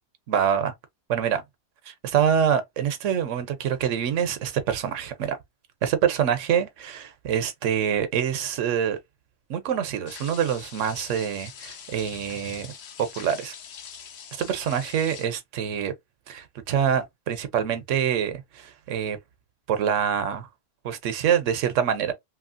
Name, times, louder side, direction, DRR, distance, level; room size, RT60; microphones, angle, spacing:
voice 1, 0.3-0.7 1.1-1.4 1.9-5.4 5.8-9.0 9.5-12.7 13.0-13.5 14.4-15.9 16.3-19.2 19.7-20.5 20.8-22.1, right 8 dB, 80° right, 1.0 m, -25 dB
sound 1, 10.1-15.3, left 7 dB, 65° left, 0.8 m, -43 dB
3.0 x 2.7 x 2.5 m
omnidirectional pair, 1.3 m